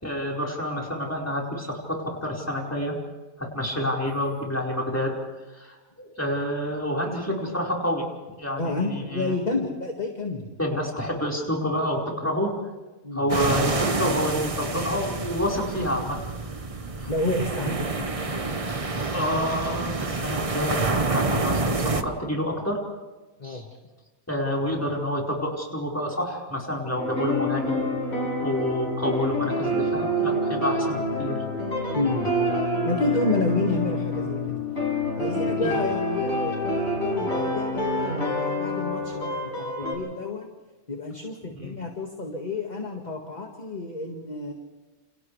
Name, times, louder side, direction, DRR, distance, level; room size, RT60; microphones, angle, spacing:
voice 1, 0.0-2.9 3.4-5.2 5.5-8.0 8.4-9.3 10.6-12.5 13.1-16.2 17.0-17.1 19.1-22.8 23.4-23.6 24.3-27.8 28.4-31.4 35.6-35.7 41.5-41.8, equal, 10° left, -2 dB, 4.7 m, -28 dB
voice 2, 8.6-10.5 13.0-13.3 17.0-18.1 18.5-18.9 23.4-23.7 31.9-32.3 32.8-34.6 35.2-40.5 40.9-44.5, left 2 dB, 30° left, 1 dB, 2.0 m, -30 dB
sound 1, 13.3-22.0, right 3 dB, 25° right, 1.0 m, -28 dB
sound 2, 27.0-39.9, left 1 dB, 45° left, 6.8 m, -27 dB
29.0 x 29.0 x 3.4 m, 1.2 s
omnidirectional pair, 1.6 m